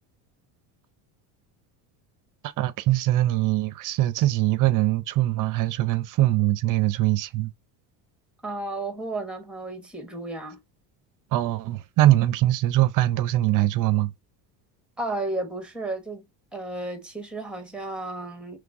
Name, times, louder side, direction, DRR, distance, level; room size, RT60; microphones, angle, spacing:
voice 1, 2.6-7.5 11.3-14.1, right 15 dB, 45° right, 0.6 m, -22 dB
voice 2, 8.4-10.6 15.0-16.3 16.5-18.6, right 2 dB, ahead, 1.0 m, -33 dB
3.8 x 3.2 x 3.6 m
cardioid pair, 135°, 43 cm